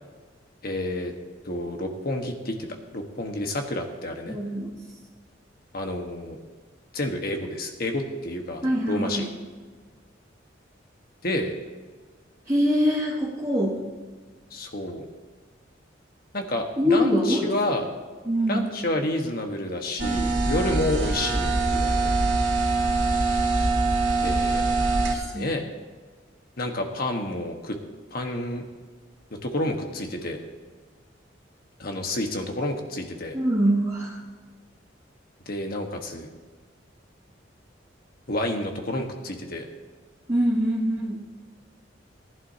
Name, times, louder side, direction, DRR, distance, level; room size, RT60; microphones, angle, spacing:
voice 1, 0.6-1.1 1.4-2.6 2.9-4.4 5.7-6.4 6.9-9.2 11.2-11.5 14.5-15.0 16.3-17.9 18.5-22.1 24.2-24.6 25.3-25.6 26.6-27.8 28.1-28.6 29.4-30.4 31.8-33.4 35.5-36.3 38.3-39.6, left 1 dB, 55° left, 4 dB, 1.4 m, -29 dB
voice 2, 4.3-4.8 8.6-9.3 12.5-13.8 16.8-17.5 18.3-18.7 25.1-25.5 33.3-34.2 40.3-41.2, equal, 25° right, -10 dB, 2.3 m, -24 dB
sound 1, 20.0-25.2, right 3 dB, 80° right, 1.9 m, -23 dB
19.0 x 11.0 x 2.8 m, 1.4 s
head